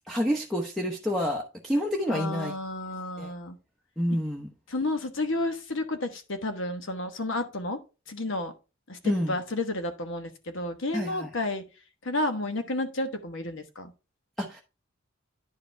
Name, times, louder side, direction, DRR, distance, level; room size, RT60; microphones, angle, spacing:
voice 1, 0.1-2.5 3.2-3.3 4.0-4.5 9.0-9.4 10.9-11.3 14.4-14.6, equal, ahead, 0.9 m, -28 dB
voice 2, 2.1-3.6 4.7-7.8 8.1-8.5 8.9-11.6 12.0-13.9, left 2 dB, 65° left, 1.2 m, -31 dB
10.5 x 4.9 x 3.3 m
head